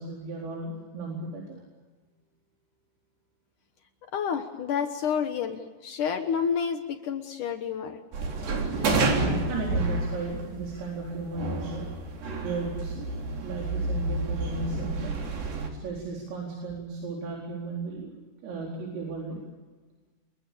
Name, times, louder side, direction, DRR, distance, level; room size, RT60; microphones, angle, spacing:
voice 1, 0.0-1.6 9.5-11.9 12.4-13.2 13.4-15.2 15.8-18.1 18.4-19.4, right 3 dB, 80° right, -2 dB, 7.0 m, -35 dB
voice 2, 4.1-8.0, left 7 dB, 85° left, 6 dB, 1.8 m, -29 dB
sound 1, 8.1-15.7, right 2 dB, 50° right, 5.0 m, -29 dB
29.5 x 23.0 x 7.0 m, 1.3 s
omnidirectional pair, 5.9 m